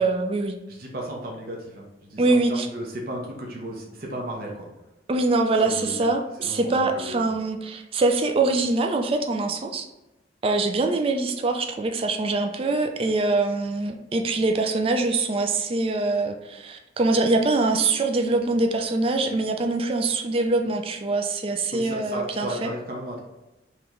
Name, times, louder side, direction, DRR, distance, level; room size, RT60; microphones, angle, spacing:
voice 1, 0.0-0.6 2.2-2.7 5.1-9.9 10.4-22.7, right 3 dB, 30° right, 5 dB, 0.3 m, -24 dB
voice 2, 0.7-4.7 5.6-6.0 6.4-7.3 21.7-23.2, right 1 dB, 55° right, -1 dB, 0.7 m, -35 dB
3.2 x 3.0 x 3.6 m, 1.0 s
head